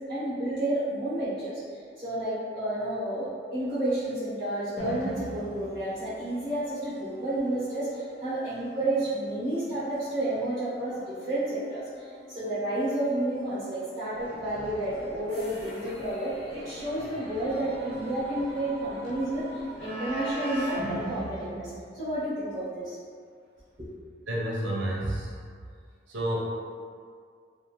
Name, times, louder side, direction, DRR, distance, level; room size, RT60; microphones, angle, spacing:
voice 1, 0.1-1.6 2.0-19.4 19.8-22.9 23.8-23.9, right 1 dB, 25° right, -14 dB, 0.8 m, -31 dB
sound 1, 4.8-22.5, right 2 dB, 50° left, 0.9 m, -42 dB
sound 2, 14.1-21.4, left 1 dB, 80° left, 0.5 m, -47 dB
voice 2, 24.3-25.3 26.1-26.4, right 1 dB, 80° right, -5 dB, 0.6 m, -29 dB
2.5 x 2.4 x 3.0 m, 2.1 s
head